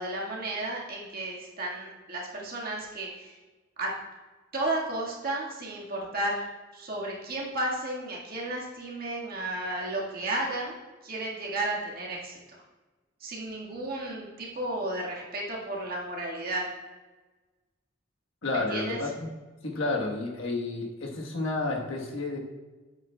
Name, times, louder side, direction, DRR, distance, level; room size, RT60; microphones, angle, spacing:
voice 1, 0.0-3.3 3.8-3.9 4.5-6.4 6.7-12.6 13.2-16.7 18.7-19.0, right 2 dB, 50° right, -3 dB, 1.7 m, -33 dB
voice 2, 18.4-19.3 19.6-22.4, left 2 dB, 90° left, -1 dB, 1.3 m, -31 dB
8.8 x 8.6 x 2.3 m, 1.2 s
head